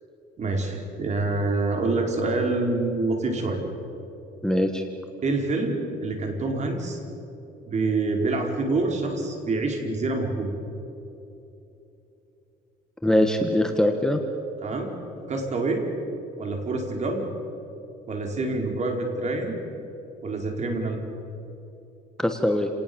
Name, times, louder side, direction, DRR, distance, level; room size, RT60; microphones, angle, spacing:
voice 1, 0.4-3.6 5.2-7.0 7.6-10.6 14.6-14.9 15.3-15.8 16.4-17.3 18.1-19.6 20.2-21.0, right 3 dB, 45° right, 2 dB, 5.0 m, -26 dB
voice 2, 4.4-4.8 13.0-14.2 22.2-22.7, left 1 dB, 5° left, 5 dB, 1.7 m, -22 dB
30.0 x 19.0 x 7.2 m, 2.9 s
cardioid pair, 110°, 17 cm